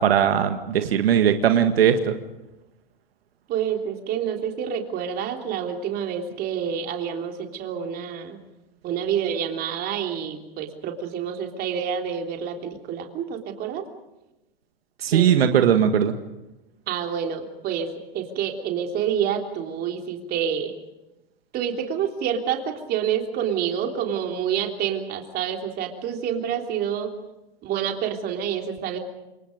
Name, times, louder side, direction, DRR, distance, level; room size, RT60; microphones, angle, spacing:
voice 1, 0.0-2.1 15.0-16.1, right 9 dB, 80° right, 7 dB, 1.9 m, -19 dB
voice 2, 3.5-8.4 8.8-13.8 15.1-15.3 16.9-17.9 18.1-20.7 21.5-27.1 27.6-29.0, right 8 dB, 30° right, 3 dB, 3.4 m, -28 dB
28.0 x 22.5 x 5.3 m, 0.99 s
hypercardioid pair, 135°, 29 cm